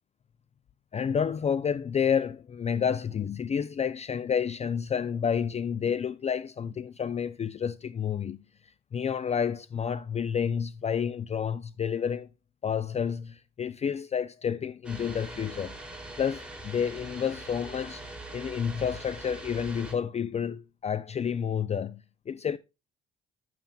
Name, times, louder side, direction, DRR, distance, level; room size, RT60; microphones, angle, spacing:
voice 1, 0.9-8.4 8.9-12.3 12.6-15.8 16.2-18.0 18.3-22.6, left 7 dB, 35° left, 0.4 m, -30 dB
sound 1, 14.8-19.9, right 2 dB, 5° right, 2.8 m, -42 dB
10.5 x 9.0 x 2.3 m
cardioid pair, 90°, 20 cm